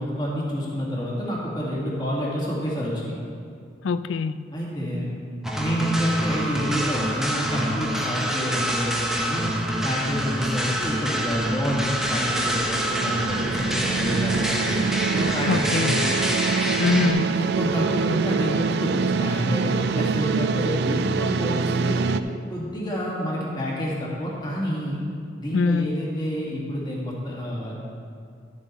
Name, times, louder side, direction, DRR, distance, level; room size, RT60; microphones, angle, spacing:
voice 1, 0.0-3.2 4.5-5.1 5.5-16.1 17.3-22.1 22.5-25.0 25.4-27.7, equal, 20° left, -5 dB, 1.9 m, -28 dB
voice 2, 3.8-4.4 15.5-16.0 16.8-17.4 25.5-25.9, left 4 dB, 75° left, 14 dB, 0.4 m, -23 dB
sound 1, 5.4-17.1, equal, ahead, 0.7 m, -26 dB
sound 2, 11.5-22.2, right 5 dB, 60° right, 0.3 m, -26 dB
12.0 x 7.4 x 4.1 m, 2.3 s
head